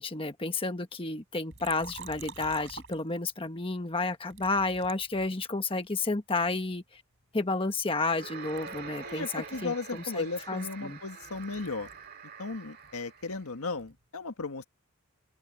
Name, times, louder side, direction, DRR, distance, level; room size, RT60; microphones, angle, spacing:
voice 1, 0.0-7.0 7.3-11.0, left 3 dB, 25° left, 1.3 m, -31 dB
Liquid, 1.5-3.5 4.3-5.8 6.4-8.2 8.4-12.1 12.4-14.0, right 5 dB, 60° right, 3.4 m, -49 dB
sound 1, 8.1-13.5, right 5 dB, 45° right, 2.0 m, -45 dB
voice 2, 9.0-11.9 12.4-14.6, left 3 dB, 80° left, 1.7 m, -36 dB
open air
head